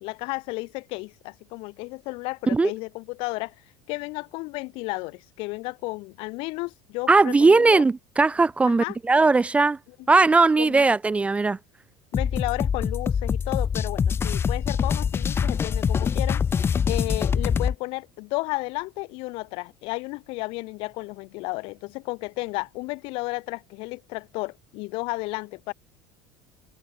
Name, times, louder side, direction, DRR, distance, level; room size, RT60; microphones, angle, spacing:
voice 1, 0.0-3.5 3.9-7.8 8.7-9.0 10.1-10.2 10.6-10.8 12.1-16.4 16.9-25.7, left 25 dB, 65° left, 1.4 m, -33 dB
voice 2, 7.1-9.8 10.1-11.6, right 3 dB, 10° right, 0.6 m, -19 dB
sound 1, 12.1-17.8, left 7 dB, 25° left, 1.4 m, -24 dB
cardioid pair, 145°, 10 cm